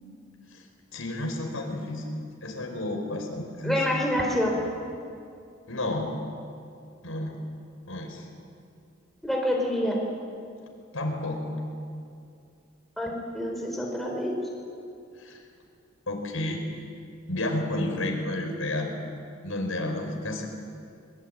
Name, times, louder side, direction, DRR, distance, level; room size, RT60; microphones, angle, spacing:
voice 1, 0.9-2.1 2.4-4.0 5.7-6.1 7.0-7.4 7.9-8.3 10.9-11.5 15.2-15.4 16.1-16.6 17.3-18.9 19.4-20.5, left 1 dB, 75° left, 2 dB, 5.2 m, -31 dB
voice 2, 3.6-4.6 9.2-10.0 13.0-14.3, left 1 dB, ahead, -1 dB, 4.4 m, -27 dB
23.5 x 23.0 x 9.2 m, 2.5 s
head